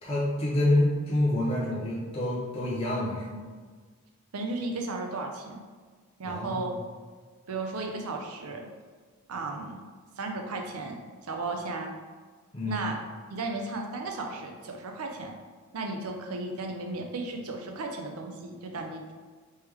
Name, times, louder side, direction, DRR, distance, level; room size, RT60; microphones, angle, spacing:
voice 1, 0.0-3.4 6.2-6.7 12.5-12.8, left 1 dB, 25° left, -7 dB, 0.8 m, -27 dB
voice 2, 4.3-5.6 6.2-6.7 7.5-8.7 9.3-9.8 10.2-11.0 11.3-11.9 12.7-13.0 13.3-15.4 15.7-19.1, right 3 dB, 80° right, 3 dB, 0.6 m, -34 dB
3.3 x 3.1 x 3.4 m, 1.5 s
head